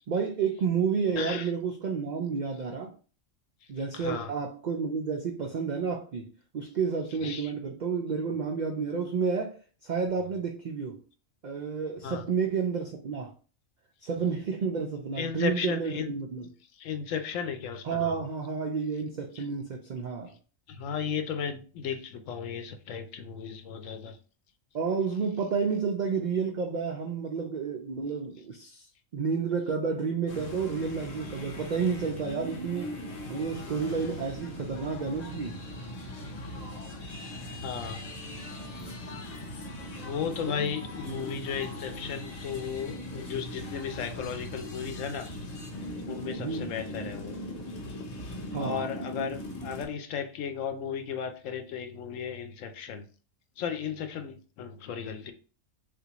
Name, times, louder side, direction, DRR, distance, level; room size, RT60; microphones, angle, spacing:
voice 1, 0.1-2.9 3.7-6.3 6.5-11.0 11.4-13.3 14.0-16.5 17.8-20.3 24.7-28.9 29.1-33.0 33.3-35.6 41.1-41.2 46.4-46.7 48.5-48.9, right 5 dB, 90° right, 2 dB, 0.4 m, -30 dB
voice 2, 1.2-1.5 3.9-4.3 7.2-7.5 12.0-12.2 15.2-16.2 16.8-18.2 19.4-19.5 20.7-24.2 37.6-38.1 40.0-45.4 46.1-47.4 48.2-53.1 53.6-55.3, left 7 dB, 80° left, 7 dB, 0.9 m, -35 dB
sound 1, 30.3-49.9, left 1 dB, 40° left, 0.6 m, -39 dB
3.5 x 2.5 x 2.9 m, 0.38 s
omnidirectional pair, 1.3 m